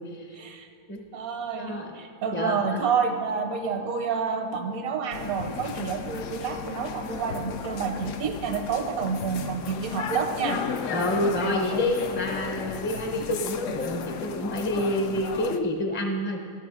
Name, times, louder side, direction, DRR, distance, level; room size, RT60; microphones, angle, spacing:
voice 1, 0.3-0.7 1.1-10.6, right 5 dB, 85° right, 6 dB, 1.3 m, -29 dB
voice 2, 1.6-2.0 2.3-2.8 10.9-16.4, left 1 dB, 15° left, 2 dB, 0.4 m, -28 dB
sound 1, 5.1-15.6, left 6 dB, 70° left, 0.9 m, -34 dB
14.0 x 5.7 x 4.8 m, 2.2 s
omnidirectional pair, 1.5 m